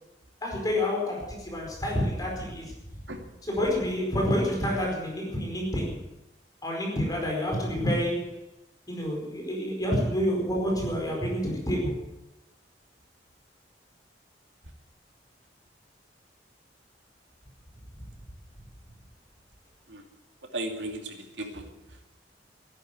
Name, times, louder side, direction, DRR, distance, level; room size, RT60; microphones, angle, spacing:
voice 1, 0.4-2.7 3.5-6.0 6.6-8.4 8.9-12.0, equal, 20° left, -1 dB, 4.8 m, -28 dB
voice 2, 20.4-22.1, right 1 dB, 90° right, 3 dB, 2.6 m, -37 dB
14.0 x 11.5 x 8.2 m, 0.93 s
head